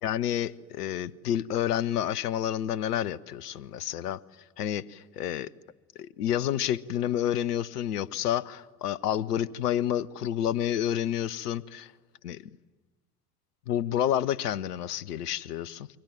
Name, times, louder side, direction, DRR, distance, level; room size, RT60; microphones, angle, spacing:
voice 1, 0.0-4.2 4.6-5.5 6.0-11.9 12.2-12.4 13.7-15.9, left 11 dB, 70° left, 0.8 m, -29 dB
28.0 x 23.0 x 8.9 m
figure-of-eight pair, 65°, 48 cm